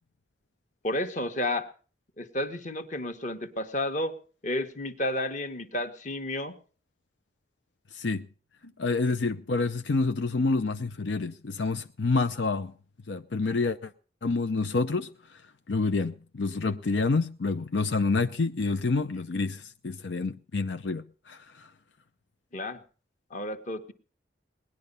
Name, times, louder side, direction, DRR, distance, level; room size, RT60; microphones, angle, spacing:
voice 1, 0.8-1.7 2.2-4.1 4.4-6.5 22.5-22.8 23.3-23.9, left 1 dB, 45° left, 1.5 m, -31 dB
voice 2, 7.9-8.3 8.8-12.7 13.1-13.9 14.2-15.4 15.7-21.7, left 3 dB, 80° left, 0.7 m, -28 dB
19.5 x 11.0 x 5.5 m
head